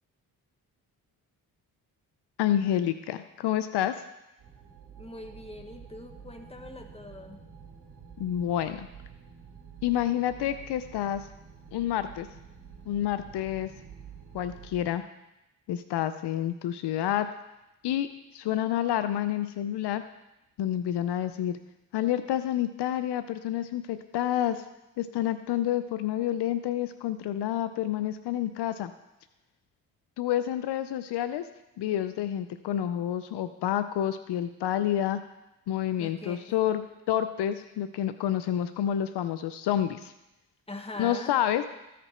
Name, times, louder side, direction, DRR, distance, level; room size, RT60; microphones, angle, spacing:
voice 1, 2.4-4.1 8.2-8.9 9.8-11.3 11.7-12.3 12.9-13.7 14.3-15.0 15.7-17.3 17.8-20.0 20.6-21.6 21.9-24.6 25.0-28.9 30.2-31.5 31.8-35.2 35.7-36.8 37.1-40.1 41.0-41.6, left 11 dB, 75° left, 11 dB, 0.6 m, -29 dB
sound 1, 4.4-14.9, right 7 dB, 65° right, 2.5 m, -49 dB
voice 2, 5.0-7.4 36.0-36.6 40.7-41.3, left 2 dB, 15° left, 4 dB, 1.4 m, -42 dB
14.5 x 5.1 x 4.3 m, 0.93 s
supercardioid pair, 60°, 41 cm